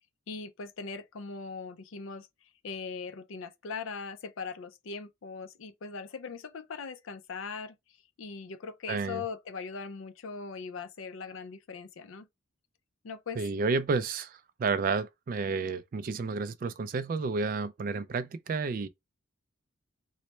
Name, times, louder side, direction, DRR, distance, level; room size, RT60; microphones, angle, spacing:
voice 1, 0.3-7.7 8.2-12.3 13.0-13.4, left 5 dB, 70° left, 0.5 m, -40 dB
voice 2, 8.9-9.2 13.4-18.9, right 4 dB, 40° right, 0.3 m, -31 dB
3.1 x 2.1 x 4.1 m
head